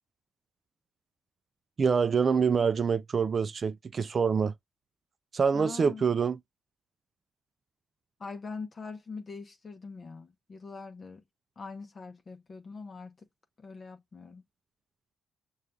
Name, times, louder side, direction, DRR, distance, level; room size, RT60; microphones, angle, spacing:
voice 1, 1.8-4.5 5.3-6.4, right 6 dB, 40° right, 0.3 m, -26 dB
voice 2, 5.5-6.0 8.2-11.2 11.6-13.2 13.6-14.4, left 4 dB, 40° left, 0.7 m, -43 dB
6.4 x 2.3 x 2.3 m
cardioid pair, 90°, 0 cm